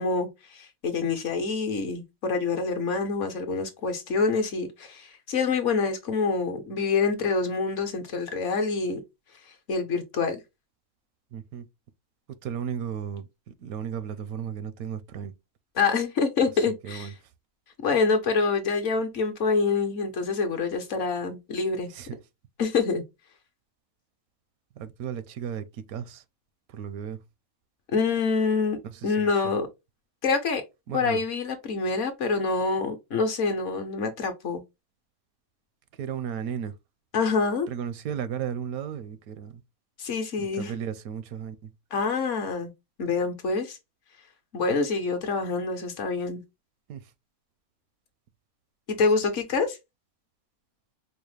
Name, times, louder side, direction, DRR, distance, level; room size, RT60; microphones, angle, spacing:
voice 1, 0.0-9.0 9.7-10.4 15.8-17.1 17.8-21.9 22.6-23.0 27.9-28.8 29.0-29.7 30.2-30.6 30.9-34.6 37.1-37.7 40.0-40.7 41.9-42.7 43.0-43.8 44.5-46.4 48.9-49.8, left 4 dB, 60° left, 1.1 m, -26 dB
voice 2, 11.3-11.7 12.4-15.3 16.8-17.1 21.9-22.2 24.8-26.2 26.7-27.2 28.8-29.5 30.9-31.2 36.0-36.7 37.7-39.6 40.4-41.7 46.9-47.0, right 8 dB, 80° right, 1.0 m, -35 dB
4.7 x 2.0 x 3.2 m
omnidirectional pair, 1.5 m